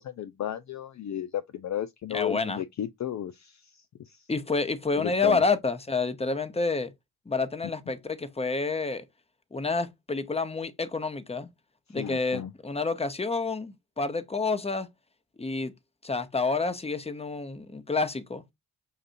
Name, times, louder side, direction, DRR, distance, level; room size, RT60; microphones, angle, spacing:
voice 1, 0.0-4.3 5.0-5.4 11.9-12.5, left 10 dB, 45° left, 0.5 m, -34 dB
voice 2, 2.1-2.6 4.3-6.9 7.3-9.0 9.5-11.5 11.9-14.9 15.4-15.7 16.0-18.4, left 4 dB, 15° left, 0.9 m, -29 dB
6.6 x 2.6 x 2.6 m
supercardioid pair, 55°, 40 cm